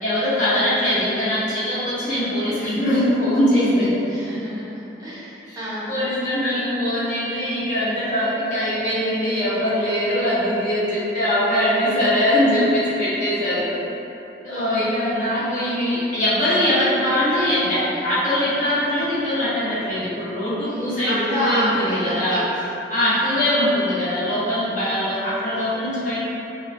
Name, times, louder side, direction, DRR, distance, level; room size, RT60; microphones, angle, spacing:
voice 1, 0.0-3.9 5.5-5.6 5.9-13.8 14.4-22.4 22.9-26.2, left 1 dB, 40° left, -11 dB, 0.8 m, -22 dB
voice 2, 4.1-4.7 5.0-6.0 14.5-14.9 20.6-22.4 23.0-23.4 24.7-25.2, equal, 20° right, -11 dB, 0.4 m, -29 dB
2.8 x 2.0 x 2.5 m, 2.9 s
head